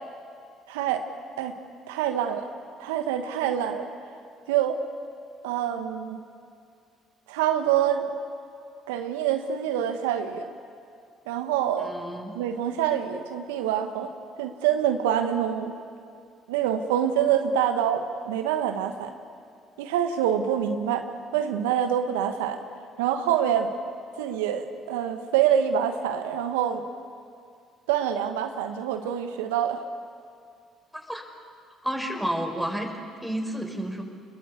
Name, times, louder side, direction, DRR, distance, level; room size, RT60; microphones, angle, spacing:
voice 1, 0.7-1.0 1.4-1.5 1.9-2.5 2.8-3.9 4.5-4.8 5.4-6.2 7.3-8.1 8.9-10.5 11.3-11.9 12.3-14.1 14.4-15.7 16.5-19.1 19.8-21.0 21.3-22.6 23.0-23.7 24.2-26.8 27.9-29.8, right 9 dB, 80° right, 6 dB, 1.3 m, -26 dB
voice 2, 11.8-12.3 30.9-31.2 31.8-32.9 33.2-34.0, right 1 dB, ahead, 3 dB, 5.7 m, -30 dB
28.5 x 21.5 x 8.5 m, 2.3 s
hypercardioid pair, 50°, 0 cm